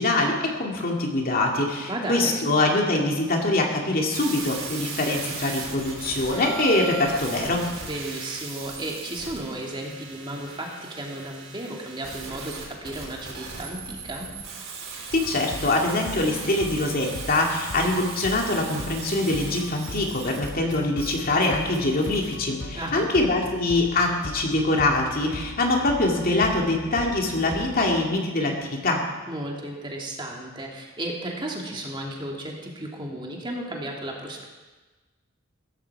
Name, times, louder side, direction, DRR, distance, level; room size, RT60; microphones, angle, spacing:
voice 1, 0.0-7.7 15.1-29.0, left 2 dB, 45° left, 0 dB, 2.5 m, -24 dB
voice 2, 1.9-2.4 7.8-14.3 22.7-23.1 29.3-34.5, right 1 dB, 25° right, -1 dB, 2.4 m, -34 dB
sound 1, 4.1-22.4, right 5 dB, 80° right, 4.2 m, -38 dB
sound 2, 15.1-28.1, left 2 dB, 65° left, 0.9 m, -39 dB
16.0 x 14.5 x 4.8 m, 1.2 s
head